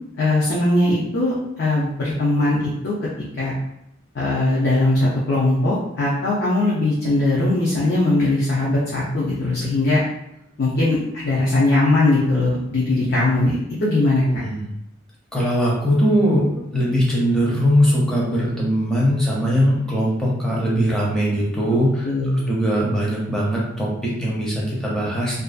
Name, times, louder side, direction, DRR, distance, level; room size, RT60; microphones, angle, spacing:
voice 1, 0.2-2.9 3.4-3.5 4.1-10.0 10.6-14.2 22.0-22.5, left 2 dB, 50° left, -7 dB, 0.5 m, -20 dB
voice 2, 15.3-22.1 22.5-25.4, equal, 5° left, -6 dB, 0.6 m, -20 dB
2.5 x 2.2 x 2.4 m, 0.83 s
head